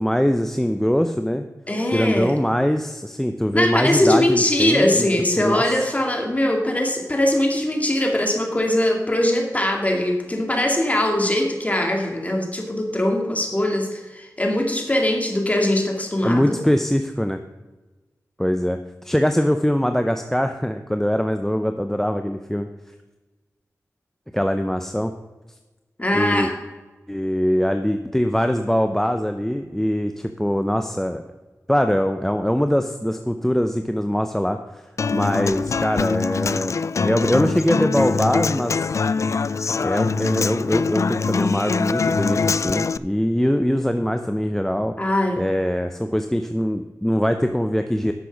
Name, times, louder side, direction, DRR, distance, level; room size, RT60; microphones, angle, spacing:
voice 1, 0.0-1.4 1.9-5.1 5.4-5.6 16.2-17.4 18.4-22.7 24.3-25.1 26.1-26.5 27.1-31.2 31.7-34.8 35.1-38.8 39.8-45.0 45.4-48.1, equal, 5° left, 7 dB, 0.6 m, -22 dB
voice 2, 1.7-2.3 3.5-16.6 26.0-26.5 45.0-45.4, left 1 dB, 25° left, 2 dB, 2.4 m, -21 dB
Human voice / Acoustic guitar, 35.0-43.0, left 5 dB, 60° left, 0.3 m, -23 dB
10.5 x 6.9 x 5.9 m, 1.2 s
wide cardioid pair, 60°, 6 cm